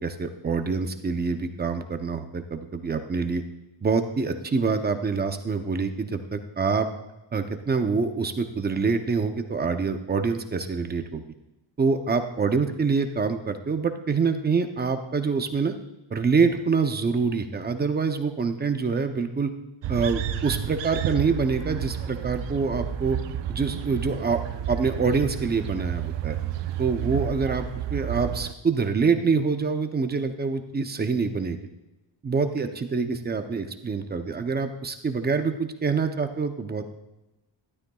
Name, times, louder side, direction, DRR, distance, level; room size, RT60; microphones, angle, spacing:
voice 1, 0.0-3.4 3.8-6.9 7.3-11.2 11.8-15.7 16.1-19.5 19.9-23.2 23.5-24.4 24.7-26.4 26.8-27.6 27.9-31.6 32.2-36.9, right 5 dB, 20° right, 7 dB, 0.6 m, -26 dB
sound 1, 19.8-28.5, right 10 dB, 70° right, 0.7 m, -31 dB
13.0 x 12.0 x 2.3 m, 1.0 s
wide cardioid pair, 170°, 46 cm